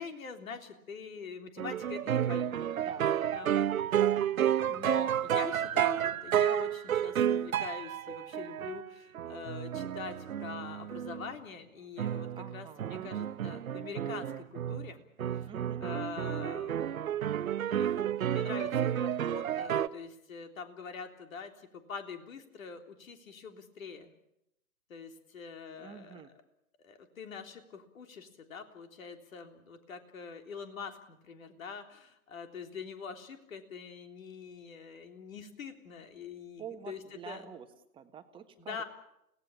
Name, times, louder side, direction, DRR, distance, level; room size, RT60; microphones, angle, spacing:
voice 1, 0.0-2.6 3.3-3.6 4.6-15.0 15.3-15.5 15.8-16.9 17.3-24.1 24.9-26.2 26.8-37.4 38.6-38.8, left 6 dB, 60° left, 6 dB, 3.6 m, -44 dB
sound 1, 1.6-11.3 12.0-14.9 15.2-19.9, right 10 dB, 60° right, 0.9 m, -31 dB
voice 2, 2.7-3.1 12.4-13.1 15.4-15.8 25.8-26.3 36.6-37.7 37.9-38.8, right 8 dB, 10° right, 6 dB, 1.4 m, -47 dB
29.5 x 18.0 x 7.2 m, 0.81 s
figure-of-eight pair, 130°, 46 cm